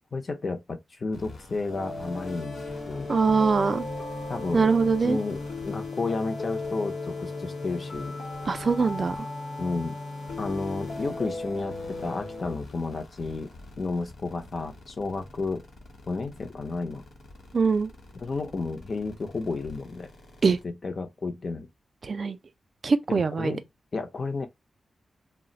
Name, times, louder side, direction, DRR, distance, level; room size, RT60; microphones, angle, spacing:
voice 1, 0.1-3.4 4.3-4.7 5.0-8.1 9.6-10.0 10.4-13.5 13.8-15.6 16.1-17.0 18.2-20.1 20.4-21.7 23.1-23.7 23.9-24.5, left 3 dB, 40° left, 0.5 m, -32 dB
sound 1, 1.1-20.6, left 2 dB, 60° left, 1.0 m, -42 dB
sound 2, 1.7-12.6, left 3 dB, 90° left, 0.9 m, -37 dB
voice 2, 3.1-3.8 4.5-5.2 8.5-9.2 17.5-17.9 20.4-20.6 22.0-22.4 22.8-23.5, right 4 dB, 45° right, 0.3 m, -23 dB
2.4 x 2.0 x 3.7 m
wide cardioid pair, 140°, 0 cm